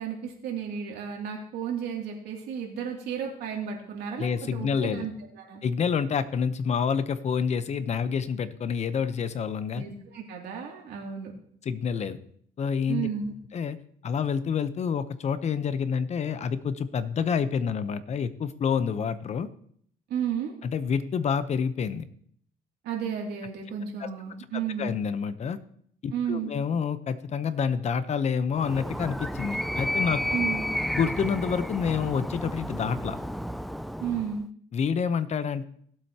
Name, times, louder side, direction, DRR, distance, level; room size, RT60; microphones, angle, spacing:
voice 1, 0.0-5.6 9.7-11.3 12.9-13.3 20.1-20.5 22.8-24.9 26.1-26.5 30.3-30.6 34.0-34.5, right 7 dB, 75° right, 0 dB, 2.7 m, -33 dB
voice 2, 4.2-5.1 5.6-9.8 11.6-12.2 12.6-13.1 13.5-13.8 14.0-19.5 20.6-22.1 24.0-24.1 24.8-25.6 26.0-30.4 30.9-33.2 34.7-35.6, left 6 dB, 40° left, 13 dB, 0.8 m, -28 dB
Animal, 28.5-34.4, left 1 dB, ahead, 0.3 m, -31 dB
17.5 x 7.9 x 2.9 m, 0.64 s
cardioid pair, 110°, 17 cm